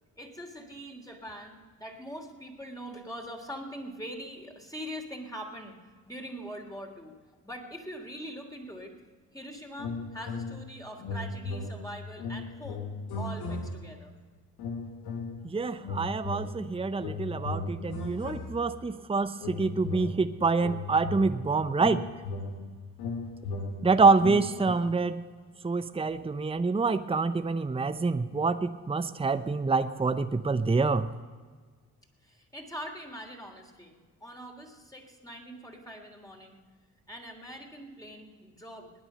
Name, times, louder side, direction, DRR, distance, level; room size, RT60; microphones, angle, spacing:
voice 1, 0.2-7.2 7.4-8.9 9.3-12.9 13.2-14.1 32.2-36.6 37.1-38.9, equal, 10° left, 1 dB, 3.2 m, -43 dB
sound 1, 9.8-10.7 11.0-14.1 14.6-15.5 15.8-18.9 19.4-24.7, left 3 dB, 80° left, 1.5 m, -37 dB
voice 2, 15.4-22.1 23.8-25.2 25.6-31.1, right 4 dB, 15° right, 12 dB, 0.7 m, -26 dB
20.0 x 9.8 x 5.6 m, 1.5 s
hypercardioid pair, 40°, 38 cm